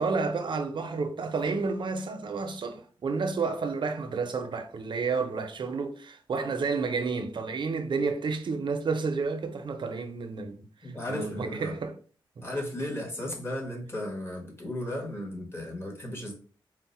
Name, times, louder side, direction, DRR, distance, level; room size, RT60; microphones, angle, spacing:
voice 1, 0.0-12.0 12.4-12.5, right 4 dB, 60° right, 0.5 m, -31 dB
voice 2, 10.8-11.7 12.4-16.3, left 1 dB, 25° left, 1.2 m, -35 dB
4.5 x 2.0 x 4.1 m
wide cardioid pair, 155°, 9 cm